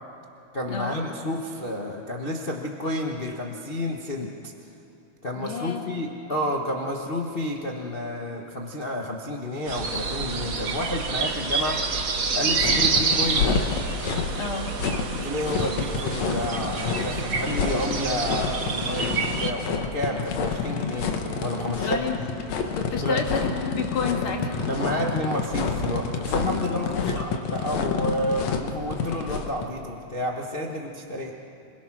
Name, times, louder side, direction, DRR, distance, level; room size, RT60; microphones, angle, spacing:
voice 1, 0.5-4.5 5.2-11.8 12.3-13.6 15.2-21.1 21.4-22.3 22.7-22.8 23.0-23.2 24.7-31.3, left 1 dB, 90° left, 0 dB, 0.5 m, -30 dB
voice 2, 5.4-5.8 14.4-14.7 21.8-22.2 22.7-24.7 26.9-27.2, left 5 dB, 45° left, 1 dB, 2.8 m, -30 dB
sound 1, 9.7-19.5, right 4 dB, 60° right, 0.9 m, -28 dB
sound 2, 12.6-29.6, left 5 dB, 65° left, 2.4 m, -28 dB
sound 3, 16.1-28.6, left 1 dB, 15° left, 3.4 m, -42 dB
27.0 x 21.0 x 6.1 m, 2.7 s
omnidirectional pair, 3.4 m